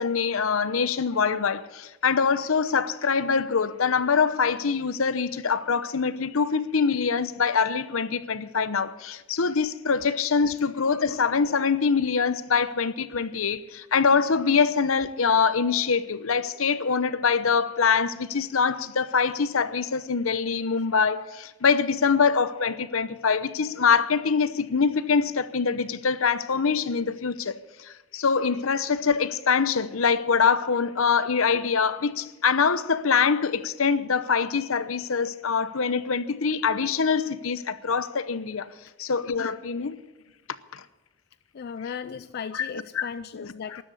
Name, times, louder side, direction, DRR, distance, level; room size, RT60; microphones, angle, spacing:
voice 1, 0.0-38.7 39.0-40.0 40.7-40.8 42.5-42.7 42.9-43.1 43.3-43.5, left 5 dB, 70° left, 0.8 m, -24 dB
voice 2, 41.5-43.8, left 6 dB, 50° left, 0.4 m, -36 dB
13.0 x 11.5 x 8.3 m
head